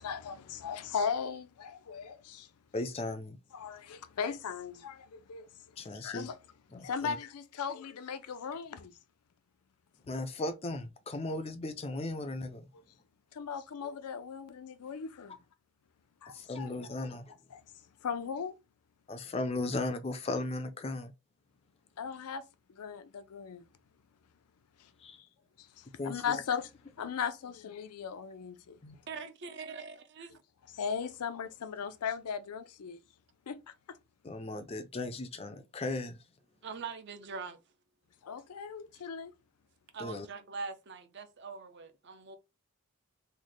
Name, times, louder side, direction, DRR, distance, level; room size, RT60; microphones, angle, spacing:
voice 1, 0.0-2.5 3.5-5.5 5.8-6.4 6.8-9.0 13.3-15.4 16.2-16.7 17.0-17.1 17.5-17.6 18.0-18.5 22.0-22.4 22.7-23.6 24.8-24.9 25.2-25.3 25.6-26.7 27.0-28.8 30.7-33.0 33.5-34.0 38.2-39.3, left 6 dB, 90° left, 0.5 m, -38 dB
voice 2, 2.7-3.4 5.8-6.3 6.7-7.2 10.1-12.7 16.3-17.3 19.1-21.1 25.0-25.2 26.0-26.4 28.8-29.0 34.2-36.2 40.0-40.3, left 2 dB, 25° left, 0.4 m, -36 dB
voice 3, 29.1-30.3 36.6-37.6 39.9-42.4, right 4 dB, 50° right, 0.5 m, -42 dB
3.2 x 2.1 x 3.9 m
head